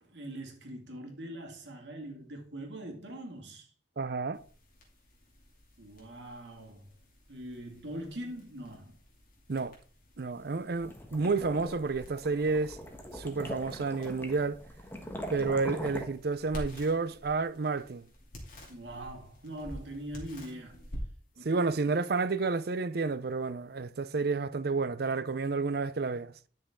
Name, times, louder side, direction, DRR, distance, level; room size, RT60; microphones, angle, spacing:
voice 1, 0.0-3.7 5.8-6.9 7.3-9.0 18.7-20.9 21.4-21.6, right 1 dB, 90° right, 2.3 m, -42 dB
voice 2, 4.0-4.4 9.5-9.7 10.2-12.8 13.1-14.6 15.3-18.1 21.4-26.3, right 4 dB, 60° right, 0.6 m, -30 dB
sound 1, 4.3-23.9, equal, 50° left, 2.6 m, -50 dB
sound 2, 10.5-16.1, equal, 10° left, 1.3 m, -41 dB
10.5 x 6.3 x 3.7 m
head